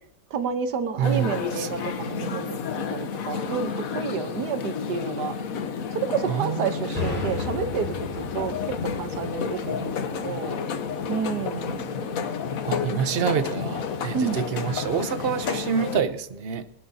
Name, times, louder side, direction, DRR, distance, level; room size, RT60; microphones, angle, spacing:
voice 1, 0.3-2.6 2.9-5.3 5.9-10.6 11.1-11.9 12.9-13.3 14.1-14.4, right 6 dB, 75° right, 1.6 m, -30 dB
sound 1, 1.0-16.0, left 6 dB, 60° left, 1.3 m, -31 dB
voice 2, 1.0-1.9 6.3-7.1 12.7-16.7, right 7 dB, 45° right, 0.8 m, -27 dB
sound 2, 6.9-10.6, left 3 dB, 30° left, 2.9 m, -35 dB
28.5 x 10.5 x 2.8 m
omnidirectional pair, 1.8 m